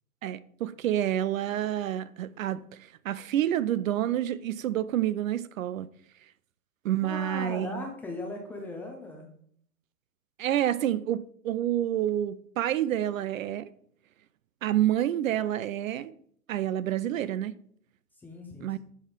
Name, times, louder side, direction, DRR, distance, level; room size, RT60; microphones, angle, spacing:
voice 1, 0.2-5.9 6.8-7.9 10.4-13.7 14.6-16.1 16.5-17.5 18.6-18.8, right 12 dB, 65° right, 0.5 m, -28 dB
voice 2, 7.0-9.3 18.2-18.8, left 2 dB, 5° left, 0.4 m, -38 dB
7.8 x 3.6 x 4.8 m
hypercardioid pair, 115°, 44 cm